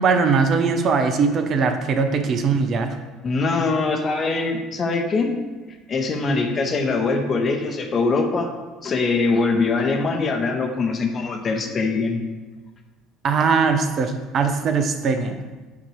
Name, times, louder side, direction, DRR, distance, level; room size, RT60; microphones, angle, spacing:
voice 1, 0.0-3.0 13.2-15.4, right 5 dB, 45° right, 7 dB, 0.6 m, -20 dB
voice 2, 3.2-5.3 5.9-8.5 8.8-12.2, left 3 dB, 35° left, 3 dB, 1.0 m, -22 dB
8.3 x 2.9 x 4.8 m, 1.3 s
figure-of-eight pair, 60°, 0 cm